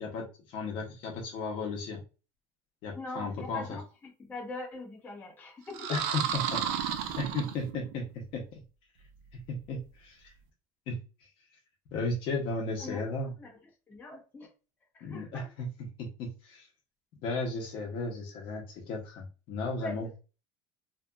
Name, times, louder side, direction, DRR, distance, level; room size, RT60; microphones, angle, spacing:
voice 1, 0.0-2.0 2.8-3.8 5.9-6.9 7.1-8.6 9.5-10.3 10.9-11.0 11.9-13.3 15.0-15.7 16.0-16.7 17.2-20.1, left 3 dB, 55° left, 0 dB, 0.7 m, -35 dB
voice 2, 2.9-6.0 12.8-13.0 13.4-13.6 13.9-14.5 14.9-15.5 19.8-20.2, left 2 dB, 20° left, -1 dB, 0.9 m, -42 dB
sound 1, 5.7-8.0, right 9 dB, 80° right, 0.4 m, -32 dB
2.8 x 2.4 x 2.2 m, 0.32 s
cardioid pair, 150°, 10 cm